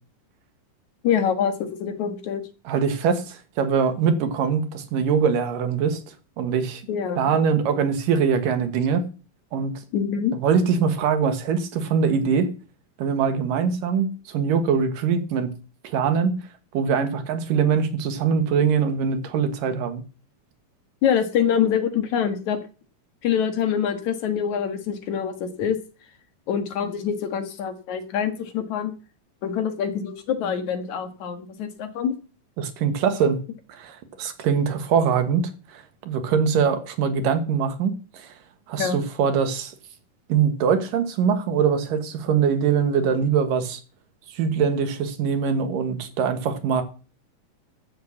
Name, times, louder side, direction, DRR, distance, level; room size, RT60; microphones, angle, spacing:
voice 1, 1.0-2.4 6.9-7.2 9.9-10.4 21.0-22.6 23.2-25.8 26.5-28.9 29.4-32.1 38.8-39.0, left 8 dB, 65° left, 2.8 m, -25 dB
voice 2, 2.7-6.0 6.4-6.8 7.2-9.1 9.5-9.7 10.4-12.5 13.0-15.5 15.8-16.4 16.7-20.0 32.6-33.4 33.7-38.3 38.7-39.7 40.3-43.8 44.3-46.8, right 6 dB, 85° right, 3.2 m, -23 dB
13.5 x 6.6 x 7.1 m
omnidirectional pair, 3.8 m